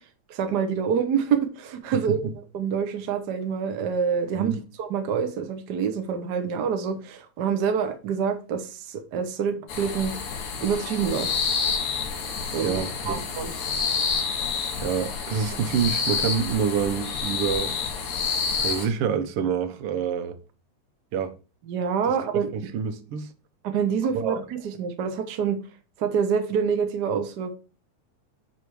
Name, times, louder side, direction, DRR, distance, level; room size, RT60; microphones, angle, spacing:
voice 1, 0.3-2.3 2.5-10.2 10.6-11.3 12.5-13.5 21.7-22.5 23.6-25.6 26.0-27.6, right 7 dB, 80° right, 0.9 m, -26 dB
sound 1, 9.7-18.9, left 5 dB, 80° left, 3.0 m, -28 dB
voice 2, 12.6-13.2 14.8-17.8 18.6-20.4 21.1-21.3 22.1-22.2 22.5-23.3 24.1-24.4, right 7 dB, 65° right, 1.6 m, -27 dB
10.0 x 3.5 x 4.6 m
omnidirectional pair, 3.3 m